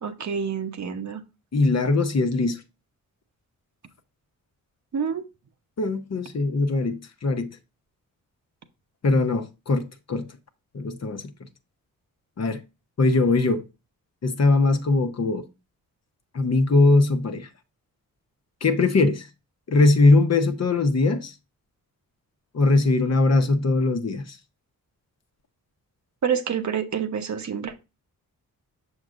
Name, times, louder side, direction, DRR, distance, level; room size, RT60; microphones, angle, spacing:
voice 1, 0.0-1.2 4.9-5.2 26.2-27.8, right 7 dB, 55° right, 0.9 m, -27 dB
voice 2, 1.5-2.6 5.8-7.6 9.0-10.3 10.7-11.3 12.4-12.6 13.0-13.6 14.2-15.5 16.3-17.5 18.6-19.3 19.7-21.3 22.5-24.4, left 3 dB, 50° left, 1.0 m, -21 dB
6.3 x 6.2 x 2.5 m
cardioid pair, 65°, 35 cm